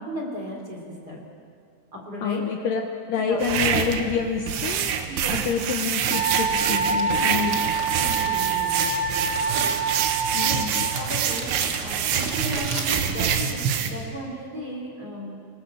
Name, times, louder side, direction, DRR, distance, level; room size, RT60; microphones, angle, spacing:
voice 1, 0.0-1.3 1.9-2.7 3.1-3.4 5.1-5.5 6.5-7.3 7.9-9.3 10.4-10.6 10.9-15.4, equal, 25° right, 0 dB, 3.5 m, -36 dB
voice 2, 2.2-2.8 3.1-4.9 5.3-7.7 10.3-10.7, left 6 dB, 70° left, 3 dB, 2.3 m, -27 dB
sound 1, 3.4-13.9, right 8 dB, 85° right, 3.4 m, -26 dB
Crumpling crinkling, 4.8-13.4, right 3 dB, 45° right, 1.3 m, -36 dB
Wind instrument woodwind instrument, 6.1-11.1, right 4 dB, 70° right, 4.0 m, -26 dB
26.0 x 19.5 x 7.6 m, 2.3 s
omnidirectional pair, 4.8 m